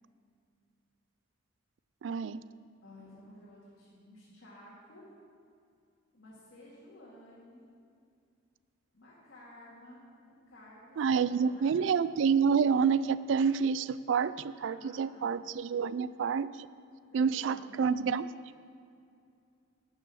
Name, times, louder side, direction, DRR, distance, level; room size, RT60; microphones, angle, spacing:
voice 1, 2.0-2.4 11.0-16.5 17.1-18.3, right 6 dB, 65° right, 16 dB, 0.3 m, -28 dB
voice 2, 2.8-5.1 6.1-7.7 8.9-11.9 14.7-15.4 17.1-17.7, left 1 dB, 70° left, -8 dB, 2.2 m, -54 dB
11.0 x 7.0 x 6.2 m, 2.4 s
head